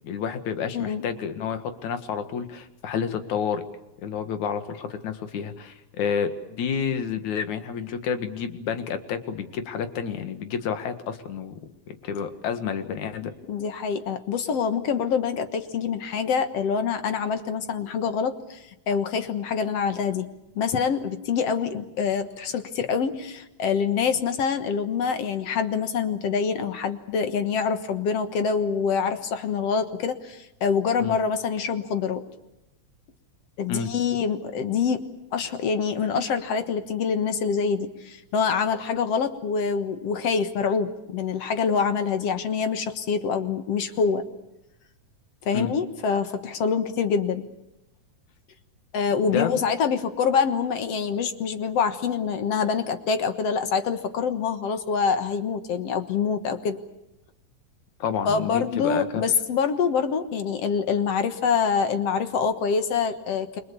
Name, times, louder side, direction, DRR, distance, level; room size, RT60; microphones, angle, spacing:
voice 1, 0.0-3.6 4.0-11.5 11.9-13.3 31.0-31.2 33.7-33.9 45.5-45.7 49.2-49.6 58.0-59.2, left 7 dB, 75° left, 9 dB, 3.1 m, -30 dB
voice 2, 0.7-1.1 13.5-20.3 20.6-32.2 33.6-35.0 35.3-44.2 45.5-47.4 48.9-56.8 58.3-63.6, left 6 dB, 60° left, 9 dB, 2.3 m, -25 dB
29.0 x 23.0 x 7.0 m, 0.92 s
omnidirectional pair, 3.4 m